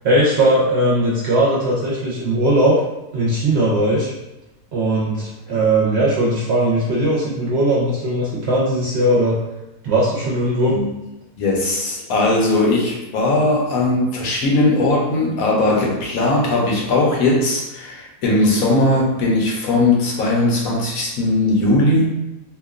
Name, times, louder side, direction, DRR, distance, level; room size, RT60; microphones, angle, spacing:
voice 1, 0.0-2.8 3.1-4.1 4.7-9.4 9.8-10.8, right 1 dB, 60° right, -6 dB, 0.7 m, -18 dB
voice 2, 11.4-22.1, left 2 dB, 80° left, -2 dB, 1.1 m, -18 dB
2.9 x 2.2 x 2.3 m, 0.98 s
omnidirectional pair, 1.5 m